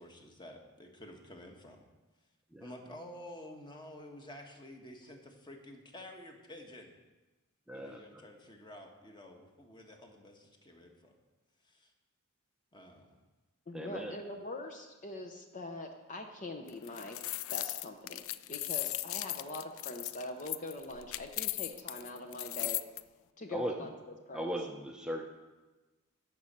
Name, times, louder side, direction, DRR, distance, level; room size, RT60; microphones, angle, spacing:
voice 1, 0.0-1.8 2.6-6.9 7.7-11.2 11.6-11.9 12.7-13.2, left 1 dB, 20° left, 3 dB, 1.3 m, -50 dB
voice 2, 7.7-8.0 13.7-14.1 23.5-23.7 24.3-25.2, equal, 5° right, 1 dB, 0.7 m, -37 dB
voice 3, 13.7-17.2 17.5-22.8 23.4-23.9 24.3-24.5, left 2 dB, 35° left, 4 dB, 0.7 m, -43 dB
sound 1, 16.7-23.0, left 16 dB, 65° left, 0.3 m, -37 dB
12.0 x 5.3 x 7.3 m, 1.2 s
head